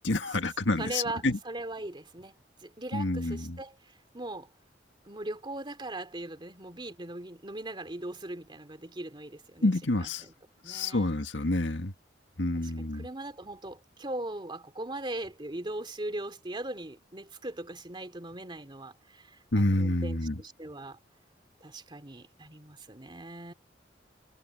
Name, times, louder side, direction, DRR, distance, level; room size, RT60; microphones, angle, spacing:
voice 1, 0.0-1.4 2.9-3.6 9.6-10.2 10.7-11.9 12.4-13.0 19.5-20.4, left 2 dB, 90° left, 1.8 m, -28 dB
voice 2, 0.8-2.3 2.6-3.8 4.1-4.5 5.0-9.7 10.0-10.3 10.6-11.1 12.5-21.0 21.6-23.5, right 1 dB, 25° right, 2.7 m, -39 dB
head